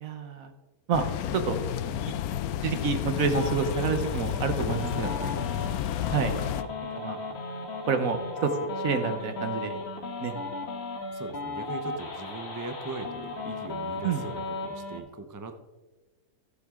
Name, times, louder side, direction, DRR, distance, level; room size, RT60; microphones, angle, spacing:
voice 1, 0.0-0.5 0.9-1.0 1.3-1.6 2.1-2.2 2.6-5.1 6.1-6.3 6.9-7.2 7.9-8.5 8.8-9.8 10.2-10.3 14.0-14.2, right 5 dB, 65° right, 8 dB, 1.4 m, -28 dB
sound 1, 0.9-6.6, left 10 dB, 80° left, 1.0 m, -31 dB
sound 2, 3.3-15.0, left 3 dB, 45° left, 1.5 m, -36 dB
voice 2, 5.2-5.6 11.1-15.5, right 2 dB, 20° right, 8 dB, 0.5 m, -40 dB
15.0 x 7.7 x 3.7 m, 1.2 s
omnidirectional pair, 1.6 m